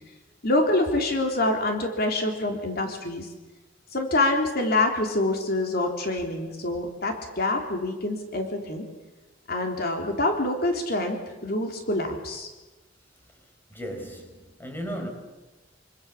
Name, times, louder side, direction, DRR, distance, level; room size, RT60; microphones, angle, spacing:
voice 1, 0.4-3.3 3.9-8.9 9.5-12.5, left 2 dB, 55° left, 3 dB, 3.5 m, -26 dB
voice 2, 13.7-15.1, equal, 10° left, 3 dB, 4.8 m, -35 dB
26.5 x 26.0 x 7.4 m, 1.1 s
head